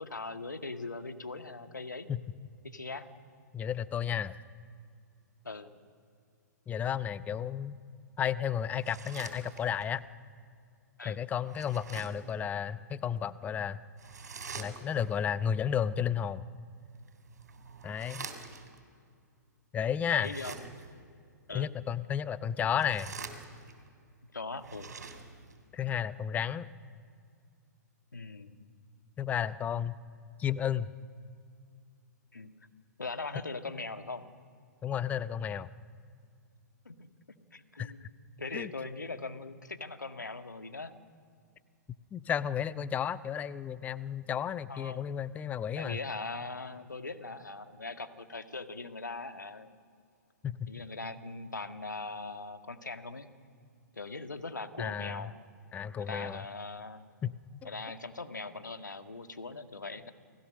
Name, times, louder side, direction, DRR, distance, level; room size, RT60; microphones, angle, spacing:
voice 1, 0.0-2.1 2.6-3.1 5.4-5.7 11.0-11.2 20.1-20.6 21.5-21.7 24.3-24.9 28.1-28.6 32.3-32.5 33.0-34.3 36.9-37.1 37.5-38.1 38.4-40.9 44.7-45.1 45.8-49.7 50.7-53.3 53.9-55.3 56.0-57.0 57.6-60.1, left 3 dB, 80° left, 8 dB, 1.8 m, -40 dB
voice 2, 3.5-4.4 6.7-7.8 8.2-10.0 11.0-13.8 14.6-16.4 17.8-18.3 19.7-20.3 21.5-23.1 25.7-26.7 29.2-30.0 30.4-30.9 34.8-35.7 37.8-37.9 38.5-38.7 42.1-46.0 50.4-50.7 54.8-55.3 55.7-56.4 57.2-57.3 57.6-57.7, left 8 dB, 15° left, 17 dB, 0.7 m, -32 dB
sound 1, 8.7-9.9 11.4-12.3 14.0-15.1 16.9-18.8 20.1-21.0 22.6-23.9 24.5-25.6, right 5 dB, 65° right, 3.6 m, -46 dB
29.0 x 19.5 x 6.5 m, 2.3 s
figure-of-eight pair, 115°, 10 cm